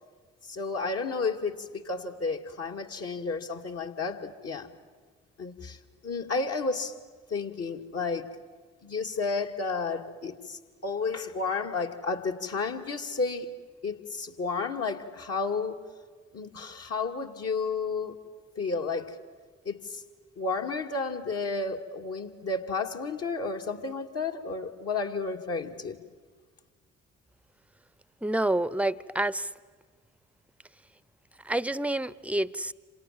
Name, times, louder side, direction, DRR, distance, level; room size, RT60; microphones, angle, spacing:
voice 1, 0.4-4.7 5.4-5.8 6.0-6.9 7.3-8.3 8.8-13.5 13.8-15.8 16.3-18.1 18.6-19.2 19.7-20.0 20.4-26.0, left 4 dB, 50° left, 2 dB, 2.4 m, -32 dB
voice 2, 28.2-29.5 31.4-32.7, right 1 dB, 5° right, 19 dB, 0.9 m, -28 dB
27.5 x 26.5 x 7.7 m, 1.5 s
hypercardioid pair, 45°, 31 cm